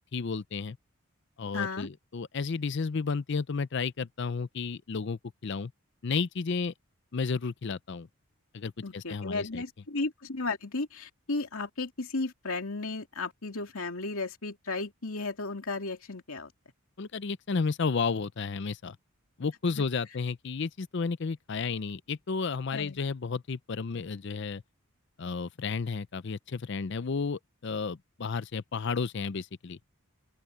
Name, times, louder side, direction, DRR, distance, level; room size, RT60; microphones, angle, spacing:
voice 1, 0.1-0.8 1.4-5.7 6.0-6.7 7.1-8.1 8.5-9.6 17.0-19.0 19.4-24.6 25.2-29.8, left 4 dB, 55° left, 0.5 m, -32 dB
voice 2, 1.5-1.9 8.8-16.5 19.8-19.9 22.7-23.0, left 3 dB, 70° left, 2.6 m, -34 dB
open air
head